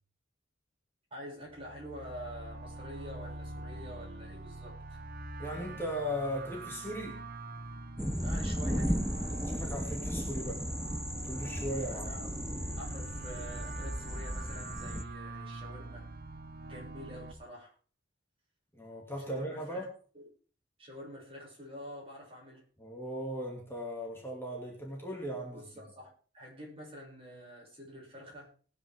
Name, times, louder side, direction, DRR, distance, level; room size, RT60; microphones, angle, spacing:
voice 1, 1.1-5.0 8.2-9.1 11.9-12.3 12.8-16.1 16.6-17.7 19.3-19.8 20.1-20.2 20.8-22.6 25.5-28.5, equal, 30° right, -2 dB, 7.2 m, -47 dB
sound 1, 1.5-17.3, right 2 dB, 55° right, 1.1 m, -45 dB
voice 2, 5.4-7.2 9.3-10.7 11.1-12.1 18.7-19.9 22.8-25.7, equal, 15° left, -1 dB, 2.7 m, -38 dB
sound 2, 8.0-15.0, equal, 5° right, 1.0 m, -35 dB
20.0 x 9.7 x 3.8 m, 0.40 s
head